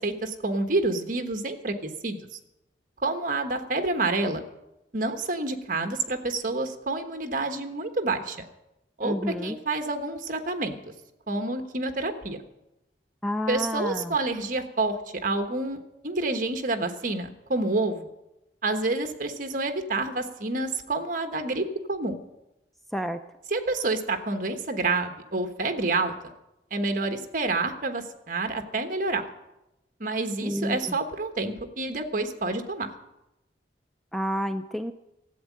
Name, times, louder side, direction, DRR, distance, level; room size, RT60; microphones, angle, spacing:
voice 1, 0.0-1.7 2.0-2.2 3.0-4.4 4.9-8.4 9.0-10.7 11.3-12.4 13.5-15.0 15.2-18.1 18.6-22.1 23.5-26.1 26.7-29.2 30.0-32.9, right 2 dB, 50° right, 7 dB, 1.3 m, -28 dB
voice 2, 9.0-9.6 13.2-14.1 22.9-23.2 30.4-30.9 34.1-34.9, equal, ahead, 8 dB, 0.4 m, -29 dB
14.0 x 8.3 x 8.6 m, 0.92 s
head